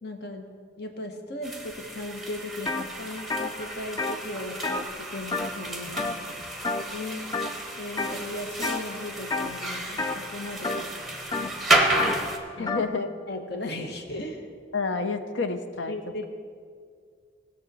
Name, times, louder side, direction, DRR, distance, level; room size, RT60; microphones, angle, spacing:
voice 1, 0.0-6.4 7.8-10.8 11.1-11.5 12.5-12.8 13.3-14.5 15.9-16.3, left 1 dB, 60° left, 4 dB, 1.1 m, -37 dB
sound 1, 1.4-12.4, right 1 dB, ahead, 1.0 m, -31 dB
sound 2, 2.7-2.9 3.2-5.7 6.0-6.3 6.6-7.0 7.3-8.1 8.6-8.9 9.3-12.9, left 3 dB, 20° left, 0.4 m, -31 dB
voice 2, 6.9-7.4 12.6-13.1 14.7-15.9, left 4 dB, 80° left, 8 dB, 0.7 m, -29 dB
18.5 x 6.5 x 4.1 m, 2.2 s
head